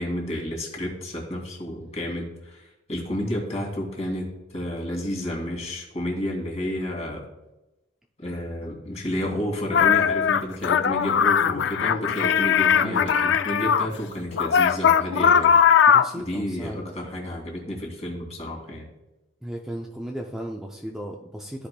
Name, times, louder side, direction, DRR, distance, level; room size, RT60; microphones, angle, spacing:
voice 1, 0.0-4.3 4.5-7.2 8.2-15.6 16.2-18.9, left 1 dB, 35° left, -1 dB, 2.2 m, -31 dB
sound 1, 9.7-13.9 14.3-16.2, left 7 dB, 60° left, 0.3 m, -19 dB
voice 2, 12.8-13.4 15.9-16.9 19.4-21.7, equal, 5° right, 0 dB, 0.4 m, -35 dB
14.0 x 5.0 x 2.2 m, 1.0 s
head